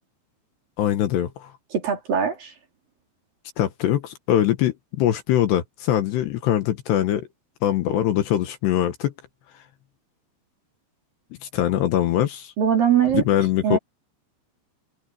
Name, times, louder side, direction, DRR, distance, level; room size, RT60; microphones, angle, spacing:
voice 1, 0.8-1.5 3.6-7.3 7.6-9.1 11.5-12.5 13.1-13.8, left 11 dB, 70° left, 3.1 m, -22 dB
voice 2, 1.7-2.5 12.6-13.2 13.6-13.8, right 8 dB, 50° right, 4.6 m, -21 dB
omnidirectional pair, 5.6 m